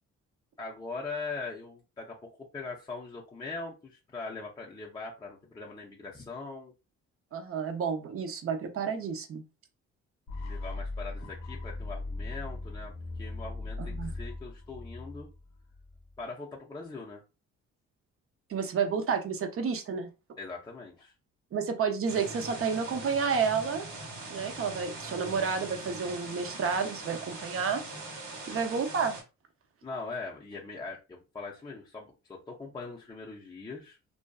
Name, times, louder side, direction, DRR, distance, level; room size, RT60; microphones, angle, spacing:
voice 1, 0.6-6.7 10.4-12.9 13.2-15.3 16.2-17.2 20.4-21.1 28.5-28.6 29.8-34.0, left 3 dB, 15° left, -3 dB, 0.5 m, -41 dB
voice 2, 7.3-9.4 13.8-14.1 18.5-20.1 21.5-23.9 24.3-27.8 28.5-29.1, right 6 dB, 45° right, 6 dB, 0.6 m, -30 dB
sound 1, 10.3-16.2, left 2 dB, 65° left, 0.8 m, -39 dB
sound 2, 22.1-29.2, right 2 dB, 90° right, 1.0 m, -42 dB
2.5 x 2.3 x 2.2 m, 0.29 s
cardioid pair, 90°, 30 cm